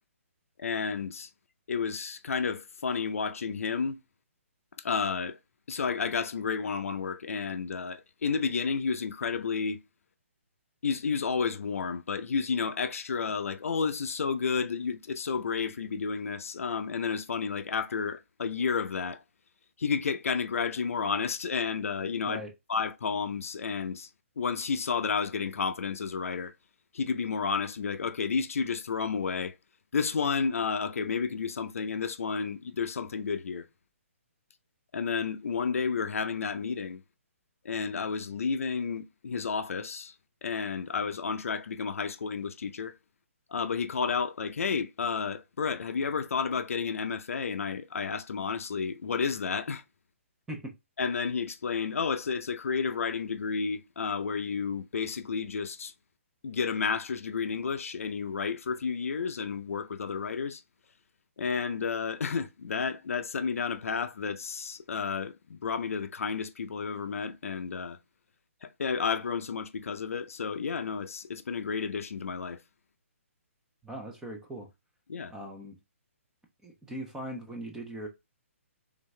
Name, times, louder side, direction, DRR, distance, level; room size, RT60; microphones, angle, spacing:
voice 1, 0.6-1.3 1.7-4.0 4.8-5.4 5.7-9.8 10.8-19.2 19.8-22.4 22.7-24.1 24.4-26.5 26.9-29.6 29.9-33.7 34.9-37.0 37.6-40.1 40.4-43.0 43.5-49.8 51.0-55.9 56.4-60.6 61.4-68.0 68.6-72.6 75.1-75.3, left 5 dB, 75° left, 0.6 m, -31 dB
voice 2, 73.8-74.7 75.3-75.8 76.6-78.1, right 1 dB, 5° right, 0.8 m, -40 dB
3.8 x 3.5 x 3.2 m
hypercardioid pair, 155°, 8 cm